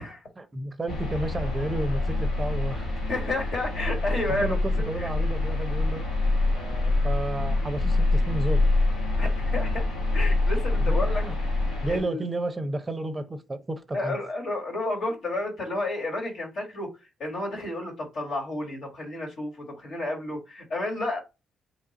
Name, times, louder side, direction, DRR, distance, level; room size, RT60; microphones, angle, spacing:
voice 1, 0.4-3.0 4.2-6.1 6.5-8.7 10.8-11.4 11.8-14.2, right 1 dB, 20° right, 0.6 m, -32 dB
sound 1, 0.9-12.0, left 2 dB, 90° left, 1.5 m, -25 dB
voice 2, 3.1-4.6 5.0-5.1 9.2-9.8 10.1-11.2 11.9-12.2 13.9-16.9 17.2-21.2, left 2 dB, 60° left, 1.5 m, -31 dB
3.0 x 2.4 x 3.9 m
cardioid pair, 90°, 0 cm